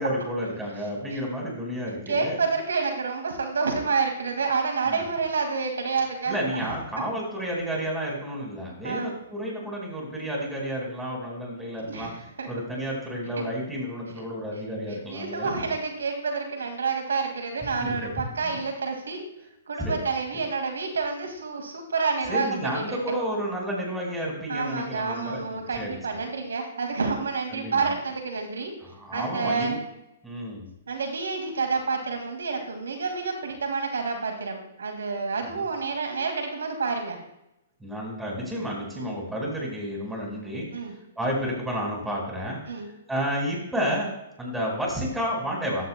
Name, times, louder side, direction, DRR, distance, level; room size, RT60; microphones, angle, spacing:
voice 1, 0.0-2.4 4.9-5.0 6.3-12.1 12.5-15.7 17.8-18.1 18.4-18.6 19.8-20.0 22.3-26.0 27.5-27.9 28.8-29.8 30.2-30.7 35.5-35.6 37.8-40.7 41.2-42.8 43.1-44.1 44.4-45.9, equal, 5° right, -3 dB, 4.7 m, -31 dB
voice 2, 2.1-6.7 8.8-9.1 11.9-12.5 14.2-14.3 15.1-19.2 19.7-23.0 24.5-28.7 29.1-29.8 30.9-37.2 39.0-39.2 40.7-40.9 42.7-42.9, right 4 dB, 75° right, 4 dB, 2.1 m, -29 dB
14.5 x 12.0 x 2.2 m, 0.84 s
figure-of-eight pair, 120°, 0 cm